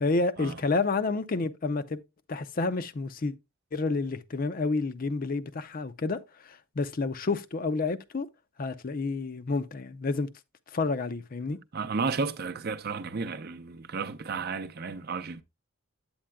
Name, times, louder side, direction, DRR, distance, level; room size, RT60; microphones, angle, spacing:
voice 1, 0.0-2.0 2.3-3.3 3.7-8.3 8.6-10.3 10.7-11.6, left 3 dB, 45° left, 0.5 m, -29 dB
voice 2, 11.7-15.4, right 4 dB, 50° right, 0.5 m, -33 dB
8.7 x 8.4 x 2.2 m
head